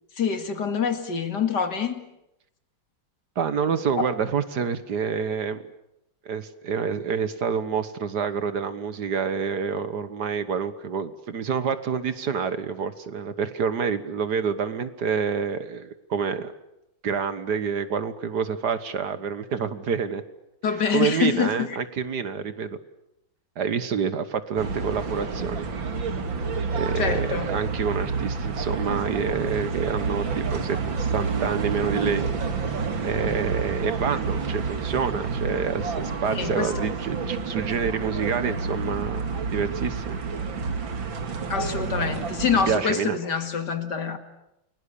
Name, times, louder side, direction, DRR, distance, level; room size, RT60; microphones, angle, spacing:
voice 1, 0.2-2.0 20.6-21.8 27.0-27.5 36.3-36.7 41.5-44.2, left 6 dB, 60° left, 2.6 m, -26 dB
voice 2, 3.3-5.7 6.2-16.5 17.0-20.2 20.9-22.8 23.6-25.6 26.7-32.3 33.0-39.2 39.5-40.2 42.7-43.2, right 6 dB, 60° right, 1.8 m, -27 dB
sound 1, 24.6-42.8, right 5 dB, 80° right, 2.9 m, -29 dB
29.5 x 22.0 x 8.5 m
omnidirectional pair, 2.1 m